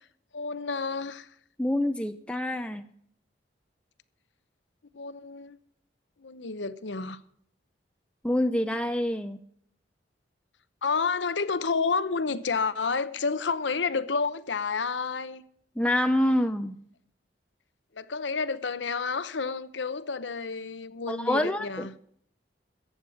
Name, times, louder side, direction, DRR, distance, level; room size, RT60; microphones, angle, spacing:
voice 1, 0.3-1.3 4.9-5.6 6.2-7.2 10.8-15.4 18.0-21.9, left 4 dB, 80° left, 0.9 m, -30 dB
voice 2, 1.6-2.8 8.2-9.4 15.8-16.7 21.1-21.9, left 1 dB, 5° left, 0.5 m, -26 dB
14.5 x 8.8 x 6.4 m
head